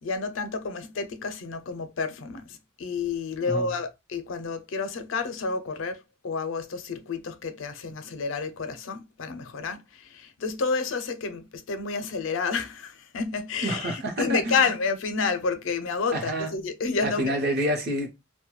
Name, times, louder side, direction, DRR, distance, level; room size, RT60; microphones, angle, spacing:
voice 1, 0.0-17.3, left 4 dB, 75° left, 0.5 m, -30 dB
voice 2, 13.6-14.6 16.1-16.5 17.0-18.1, right 1 dB, 55° right, 0.7 m, -28 dB
2.2 x 2.1 x 2.9 m
head